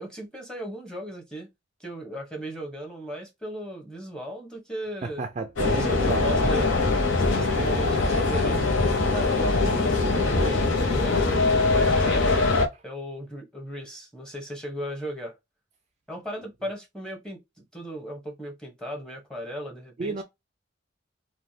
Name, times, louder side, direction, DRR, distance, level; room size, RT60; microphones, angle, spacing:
voice 1, 0.0-1.5 1.8-5.2 5.7-8.7 9.1-12.3 12.8-15.4 16.1-17.4 17.7-20.2, right 1 dB, 5° left, 1.0 m, -37 dB
voice 2, 5.0-6.3 12.7-12.8 20.0-20.2, right 3 dB, 35° right, 0.4 m, -32 dB
sound 1, 5.6-12.7, left 3 dB, 75° left, 0.9 m, -22 dB
3.3 x 2.3 x 2.7 m
head